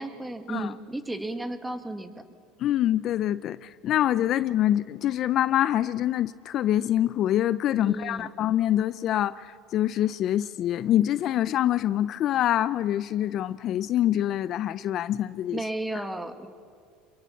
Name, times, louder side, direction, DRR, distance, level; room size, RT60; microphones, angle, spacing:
voice 1, 0.0-2.3 7.8-8.3 15.5-16.5, right 2 dB, 10° right, 9 dB, 1.9 m, -33 dB
voice 2, 2.6-15.6, left 12 dB, 50° left, 16 dB, 0.5 m, -25 dB
27.0 x 22.0 x 7.2 m, 2.3 s
supercardioid pair, 100°, 0 cm